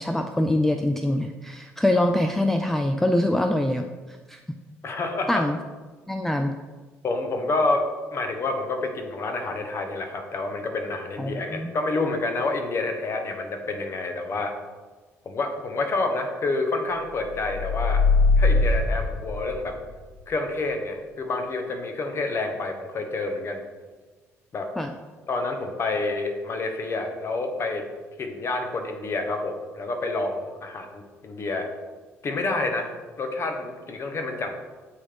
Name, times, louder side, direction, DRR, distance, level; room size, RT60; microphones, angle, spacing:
voice 1, 0.0-4.4 5.3-5.6 6.1-6.5 11.2-11.7 24.8-24.9, left 1 dB, 5° left, 6 dB, 0.3 m, -24 dB
voice 2, 4.8-5.4 7.0-7.8 8.1-14.5 15.2-18.0 18.4-19.8 20.3-23.6 24.5-24.7 25.3-27.8 28.2-31.7 32.2-32.9 33.2-34.5, left 3 dB, 35° left, 4 dB, 0.9 m, -28 dB
sound 1, 17.3-20.0, left 3 dB, 55° left, 1.5 m, -21 dB
8.2 x 3.5 x 3.5 m, 1.3 s
figure-of-eight pair, 50°, 7 cm